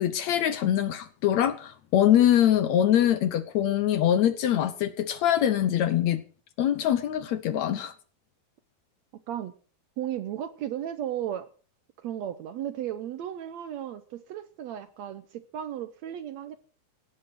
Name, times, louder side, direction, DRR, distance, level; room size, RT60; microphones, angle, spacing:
voice 1, 0.0-6.2 6.6-7.9, left 11 dB, 70° left, 1.9 m, -23 dB
voice 2, 10.0-11.5 12.0-16.7, right 11 dB, 70° right, 1.8 m, -35 dB
18.0 x 10.0 x 6.0 m
omnidirectional pair, 3.8 m